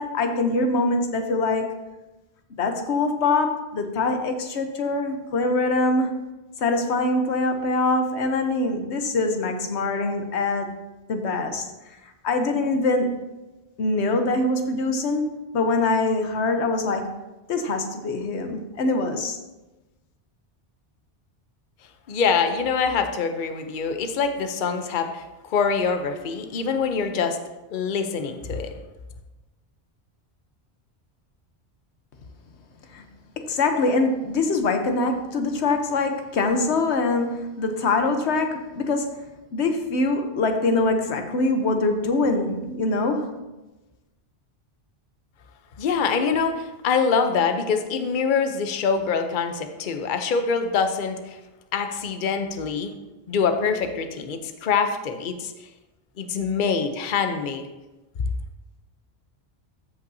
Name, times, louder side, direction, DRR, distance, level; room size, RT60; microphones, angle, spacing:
voice 1, 0.0-1.7 2.6-6.1 6.6-10.7 11.1-11.7 12.2-13.3 13.8-17.1 17.5-19.4 32.9-33.0 33.4-39.2 39.5-43.4, left 3 dB, 85° left, 6 dB, 1.1 m, -24 dB
voice 2, 22.1-27.4 27.7-28.7 45.8-51.4 51.7-52.9 53.3-55.5 56.2-57.7, left 5 dB, 55° left, 7 dB, 0.8 m, -24 dB
14.0 x 5.5 x 2.7 m, 1.1 s
omnidirectional pair, 1.1 m